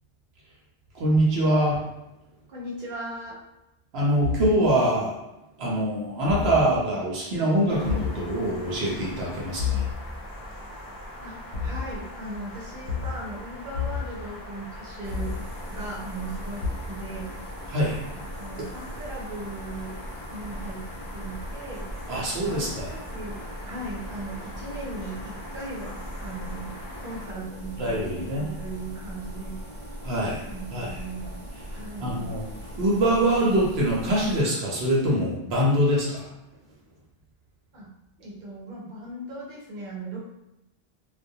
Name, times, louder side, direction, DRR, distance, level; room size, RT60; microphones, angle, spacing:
voice 1, 0.9-1.8 3.9-5.2 5.6-9.8 17.7-18.0 22.1-22.9 27.8-28.5 30.0-30.4 30.7-30.9 32.0-32.5 32.8-36.2, right 1 dB, 85° right, -4 dB, 0.9 m, -24 dB
voice 2, 2.5-3.4 11.2-11.4 11.6-17.3 18.1-20.0 20.3-20.9 21.1-22.0 22.4-23.4 23.6-27.8 28.2-29.6 30.4-31.3 31.7-32.2 37.7-37.9 38.2-40.2, right 2 dB, 55° right, -5 dB, 0.8 m, -38 dB
sound 1, 4.2-4.5 6.3-6.6 7.9-8.2 9.6-9.9 11.5-11.8 12.9-13.1 13.7-14.0 15.1-15.4 16.6-16.7, left 6 dB, 65° left, 0.7 m, -28 dB
sound 2, 7.7-27.3, left 1 dB, 35° left, 0.3 m, -41 dB
sound 3, 15.0-34.4, equal, 25° right, 0.6 m, -40 dB
2.2 x 2.1 x 2.7 m, 0.91 s
omnidirectional pair, 1.0 m